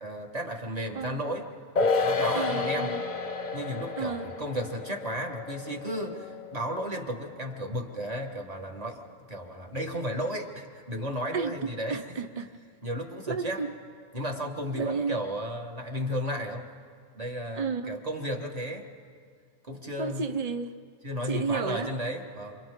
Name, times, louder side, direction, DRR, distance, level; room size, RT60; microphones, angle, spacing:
voice 1, 0.0-1.5 1.8-2.9 3.5-12.0 12.8-13.6 14.1-16.7 17.1-18.9 19.7-20.2 21.0-22.6, equal, 25° right, 2 dB, 1.6 m, -34 dB
sound 1, 1.8-8.4 8.7-8.8, left 4 dB, 35° left, 0.9 m, -31 dB
voice 2, 2.3-3.0 4.0-4.3 11.3-12.5 13.3-13.7 14.7-15.2 17.5-18.0 20.0-20.7 21.2-21.9, right 5 dB, 60° right, 7 dB, 0.4 m, -32 dB
28.5 x 26.5 x 3.7 m, 2.1 s
omnidirectional pair, 1.5 m